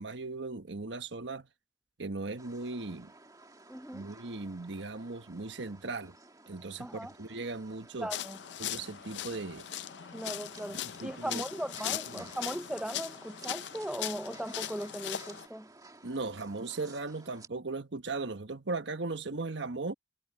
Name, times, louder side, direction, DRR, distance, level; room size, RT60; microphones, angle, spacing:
voice 1, 0.0-1.5 2.0-3.1 3.9-6.1 6.5-8.1 8.6-9.7 11.0-11.4 12.1-12.3 16.0-19.9, right 3 dB, 75° right, 1.4 m, -38 dB
sound 1, 2.4-17.5, right 3 dB, 20° right, 2.1 m, -55 dB
voice 2, 3.7-4.1 6.8-7.1 8.0-8.4 10.1-15.7, right 1 dB, 5° right, 0.5 m, -38 dB
sound 2, 8.1-15.5, left 11 dB, 70° left, 0.5 m, -39 dB
head